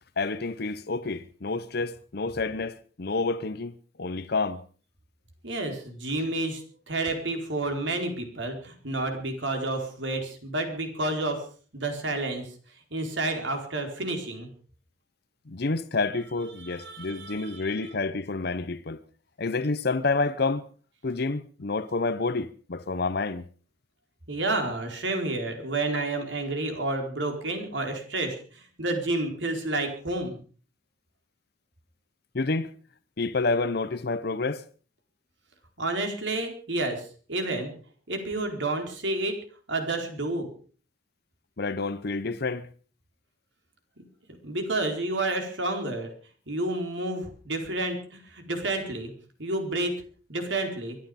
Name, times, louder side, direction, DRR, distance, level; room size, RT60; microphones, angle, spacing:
voice 1, 0.2-4.6 15.5-19.0 19.4-20.7 21.0-23.4 32.3-32.7 33.2-34.6 41.6-42.7, left 3 dB, 55° left, 0.7 m, -29 dB
voice 2, 5.4-11.4 11.7-12.5 12.9-14.5 16.6-17.9 24.3-30.4 35.8-37.7 38.1-39.4 39.7-40.5 44.4-46.1 46.5-49.1 49.4-49.9 50.3-51.0, right 2 dB, 70° right, 4.4 m, -30 dB
24.0 x 11.5 x 5.2 m
head